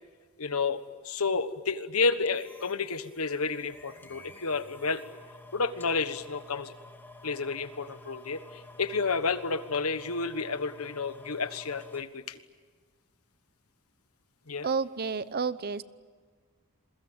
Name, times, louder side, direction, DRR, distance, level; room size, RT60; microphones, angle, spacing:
voice 1, 0.4-5.0 5.5-6.7 7.2-12.4 14.5-14.7, left 4 dB, 90° left, 11 dB, 1.4 m, -31 dB
sound 1, 2.2-12.0, left 2 dB, 10° left, 2.3 m, -51 dB
voice 2, 14.6-15.8, right 5 dB, 45° right, 16 dB, 0.8 m, -30 dB
28.0 x 22.5 x 8.8 m, 1.5 s
head